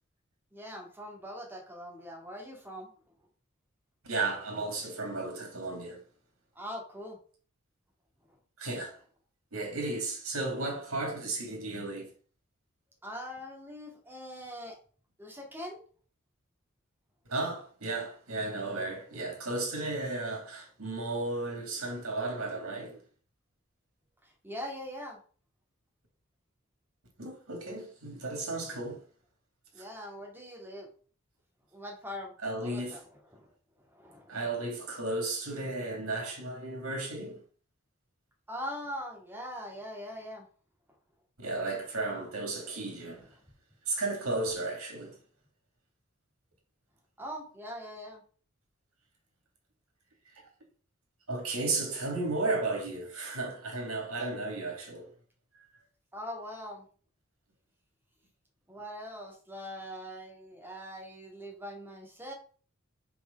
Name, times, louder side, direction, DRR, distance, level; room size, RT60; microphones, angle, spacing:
voice 1, 0.5-2.9 6.6-7.2 13.0-14.8 15.2-15.8 24.4-25.2 29.7-30.9 31.7-32.3 32.6-33.0 33.3-33.4 33.9-34.3 38.5-40.5 47.2-48.2 56.1-56.9 58.7-62.3, equal, 10° right, 2.1 m, -42 dB
voice 2, 4.0-6.0 8.6-9.0 9.5-12.1 17.3-23.0 27.2-29.0 32.4-33.0 34.3-37.4 41.4-43.2 43.9-45.1 51.3-55.1 55.5-55.7, right 2 dB, 85° right, 2.5 m, -34 dB
5.1 x 4.9 x 5.1 m
head